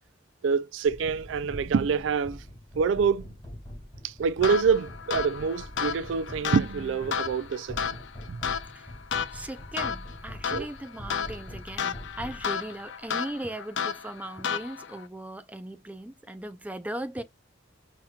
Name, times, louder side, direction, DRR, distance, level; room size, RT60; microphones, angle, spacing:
voice 1, 0.4-2.4 2.8-3.3 4.0-8.0 8.3-8.4 10.5-10.7, right 5 dB, 85° right, 0.4 m, -26 dB
sound 1, 0.8-13.0, equal, 25° left, 2.2 m, -43 dB
sound 2, 4.4-15.1, left 7 dB, 70° left, 0.4 m, -33 dB
voice 2, 9.3-17.2, right 1 dB, 10° right, 0.4 m, -38 dB
5.7 x 2.9 x 2.3 m
head